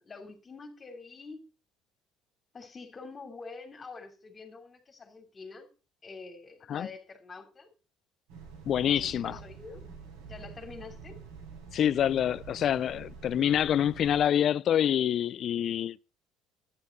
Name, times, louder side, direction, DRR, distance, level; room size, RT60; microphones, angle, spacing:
voice 1, 0.0-1.4 2.5-5.7 6.0-7.7 8.8-9.9 10.2-11.2, left 4 dB, 35° left, 2.9 m, -46 dB
sound 1, 8.3-14.2, right 6 dB, 80° right, 5.3 m, -47 dB
voice 2, 8.7-9.4 11.7-16.0, left 10 dB, 55° left, 0.4 m, -26 dB
11.0 x 9.8 x 4.1 m
supercardioid pair, 70°, 0 cm